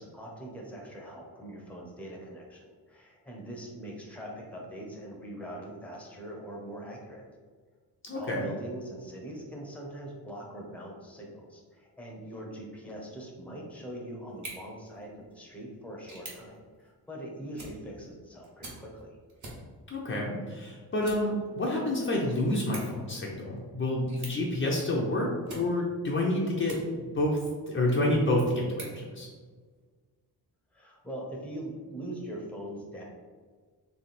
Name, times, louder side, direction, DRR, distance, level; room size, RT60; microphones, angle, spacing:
voice 1, 0.0-7.2 8.1-19.2 30.7-33.0, right 1 dB, 5° left, -2 dB, 0.8 m, -42 dB
voice 2, 8.0-8.5 19.9-27.4 27.7-28.9 29.1-29.3, left 1 dB, 30° left, -3 dB, 0.7 m, -28 dB
sound 1, 14.3-27.3 27.8-29.8, right 2 dB, 50° right, 1.4 m, -50 dB
3.3 x 3.3 x 4.2 m, 1.5 s
cardioid pair, 125°, 38 cm